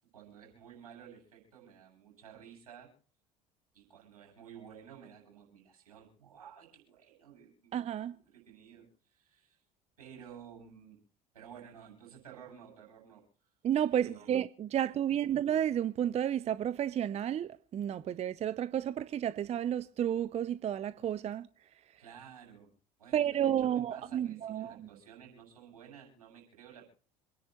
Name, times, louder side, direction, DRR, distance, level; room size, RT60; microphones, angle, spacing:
voice 1, 0.1-2.9 3.7-7.7 8.3-9.6 10.0-11.0 11.3-13.2 13.9-14.3 15.1-15.2 22.0-22.7 23.0-26.9, right 8 dB, 80° right, 7.3 m, -53 dB
voice 2, 7.7-8.2 13.6-21.5 21.9-22.0 23.1-24.9, right 10 dB, 35° right, 0.6 m, -31 dB
27.5 x 10.5 x 3.1 m
figure-of-eight pair, 65°, 19 cm